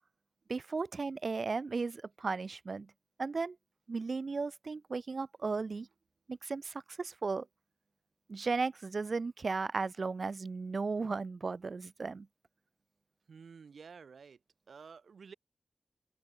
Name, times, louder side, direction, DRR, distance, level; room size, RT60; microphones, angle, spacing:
voice 1, 0.5-2.9 3.2-3.6 3.9-5.9 6.3-7.5 8.3-12.3, right 4 dB, 60° right, 0.5 m, -35 dB
voice 2, 13.3-14.4 14.7-15.3, right 5 dB, 90° right, 1.6 m, -51 dB
open air
wide cardioid pair, 90°, 0 cm